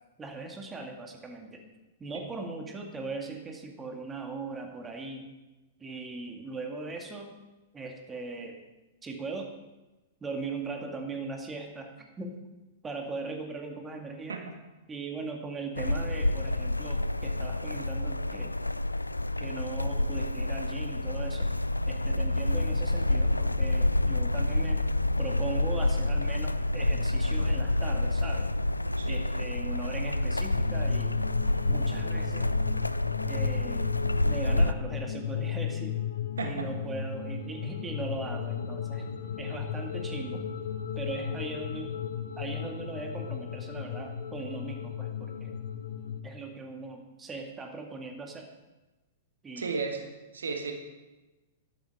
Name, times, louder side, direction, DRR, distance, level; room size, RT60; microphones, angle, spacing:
voice 1, 0.2-1.6 2.0-5.3 5.8-7.3 7.7-8.6 9.0-9.5 10.2-12.4 12.8-14.4 14.9-18.6 19.4-21.5 21.9-24.8 25.2-28.5 29.1-31.2 31.7-32.5 33.2-36.0 36.4-39.1 39.4-40.4 41.0-42.0 42.4-45.6 46.2-48.5 49.4-49.8, right 3 dB, 15° right, 3 dB, 1.9 m, -39 dB
sound 1, 15.8-34.7, left 2 dB, 85° left, 0.4 m, -28 dB
sound 2, 30.5-46.2, left 7 dB, 60° left, 1.1 m, -35 dB
voice 2, 49.6-50.1 50.3-50.7, right 4 dB, 70° right, 4 dB, 1.8 m, -33 dB
13.5 x 12.0 x 4.7 m, 1.1 s
figure-of-eight pair, 100°, 0 cm